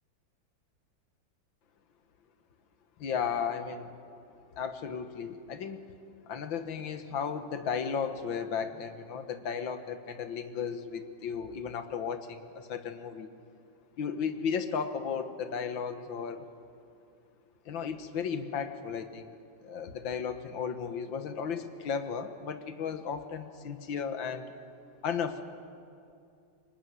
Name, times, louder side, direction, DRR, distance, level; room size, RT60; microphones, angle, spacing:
voice 1, 3.0-3.9 4.6-5.8 6.3-13.3 14.0-16.4 17.7-19.3 19.6-24.5 25.0-25.4, left 6 dB, 80° left, 9 dB, 2.0 m, -34 dB
24.0 x 19.5 x 9.6 m, 2.5 s
omnidirectional pair, 2.1 m